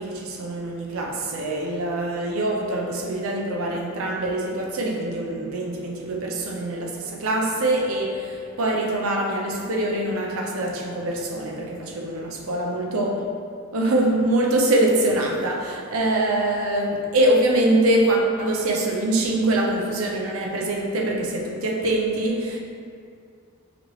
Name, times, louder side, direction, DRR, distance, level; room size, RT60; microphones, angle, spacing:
voice 1, 0.0-13.2 13.7-22.6, right 1 dB, 80° right, 0.6 m, -24 dB
5.0 x 3.1 x 3.1 m
head